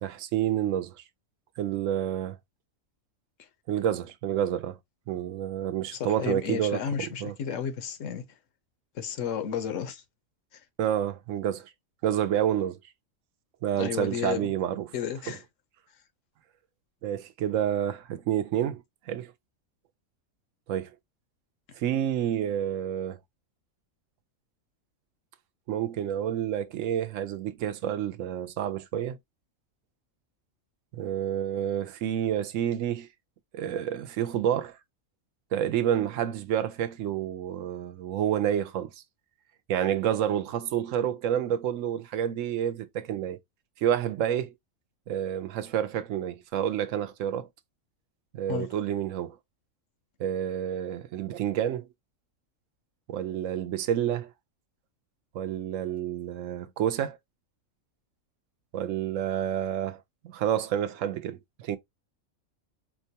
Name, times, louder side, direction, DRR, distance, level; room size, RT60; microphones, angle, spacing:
voice 1, 0.0-1.0 1.6-2.4 3.7-4.8 5.1-7.3 10.8-11.7 12.0-12.8 13.6-14.9 15.3-15.4 17.0-19.3 20.7-20.9 21.8-23.2 25.7-29.2 30.9-33.1 33.5-34.8 35.5-39.0 39.7-43.4 43.8-44.5 45.1-47.5 48.3-49.4 50.2-51.9 53.1-54.3 55.3-57.2 58.7-61.8, right 10 dB, 70° right, 0.9 m, -29 dB
voice 2, 6.0-8.2 8.9-10.0 10.5-10.6 13.7-14.5 14.9-15.4 48.5-48.7, left 8 dB, 70° left, 1.0 m, -32 dB
4.3 x 2.2 x 2.7 m
omnidirectional pair, 1.4 m